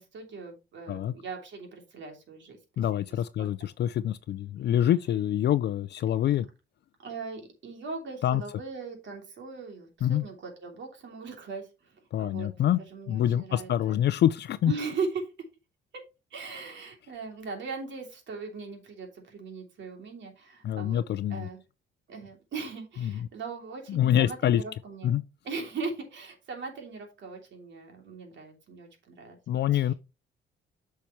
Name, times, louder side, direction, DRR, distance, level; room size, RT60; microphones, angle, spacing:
voice 1, 0.0-2.8 3.4-3.7 7.0-12.5 12.9-14.0 14.6-15.5 15.9-16.0 16.3-21.0 21.3-21.6 22.1-25.2 25.4-29.4 29.7-29.9, right 4 dB, 65° right, 3.0 m, -39 dB
voice 2, 2.8-6.5 8.2-8.4 10.0-10.2 12.1-12.8 13.1-14.7 20.6-21.5 23.0-23.1 23.9-24.6 25.0-25.2 29.5-29.9, left 11 dB, 60° left, 0.5 m, -26 dB
8.4 x 5.7 x 3.1 m
cardioid pair, 90°, 20 cm